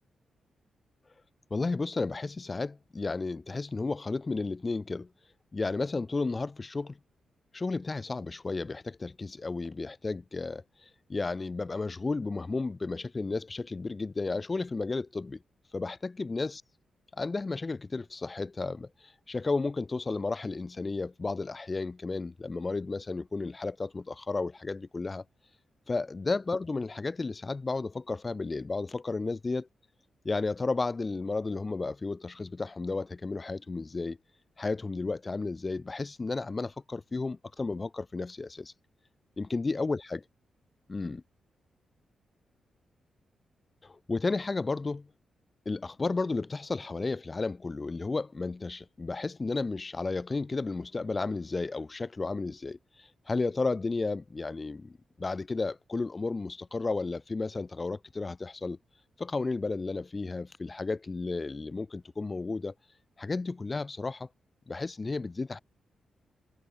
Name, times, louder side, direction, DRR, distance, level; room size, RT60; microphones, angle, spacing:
voice 1, 1.5-5.1 5.5-7.0 7.5-10.6 11.1-15.4 15.7-16.5 17.2-18.9 19.3-25.2 25.9-29.7 30.2-34.2 34.6-38.7 39.4-40.2 40.9-41.2 43.8-45.1 45.7-58.8 59.2-62.7 63.2-64.3 64.7-65.6, left 3 dB, 20° left, 0.8 m, -33 dB
wide cardioid pair, 165°, 0 cm